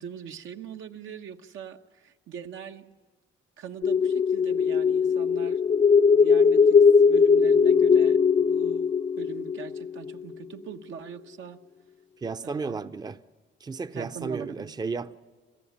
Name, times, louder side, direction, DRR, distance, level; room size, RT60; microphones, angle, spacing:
voice 1, 0.0-2.8 3.6-5.6 6.1-6.8 7.0-8.9 9.2-11.6 12.4-12.8 13.9-14.7, right 7 dB, 75° right, 1.1 m, -41 dB
sound 1, 3.8-10.3, left 5 dB, 35° left, 0.5 m, -20 dB
voice 2, 12.2-13.2 13.6-15.2, right 4 dB, 20° right, 0.6 m, -33 dB
27.0 x 14.5 x 7.3 m
cardioid pair, 90°, 20 cm